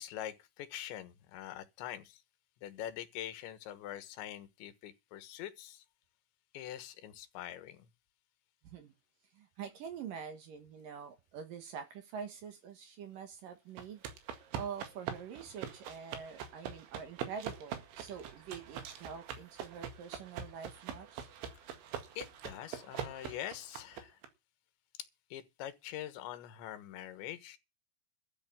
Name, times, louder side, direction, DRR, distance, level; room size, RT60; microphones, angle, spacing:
voice 1, 0.0-2.2 2.6-5.9 6.5-7.9 21.6-21.7 22.2-24.2 25.3-27.6, left 12 dB, 85° left, 3.5 m, -44 dB
voice 2, 8.6-8.9 9.3-14.2 14.5-21.3, right 7 dB, 60° right, 2.6 m, -45 dB
sound 1, 13.8-24.3, right 8 dB, 85° right, 4.2 m, -44 dB
13.0 x 6.6 x 9.0 m
omnidirectional pair, 5.1 m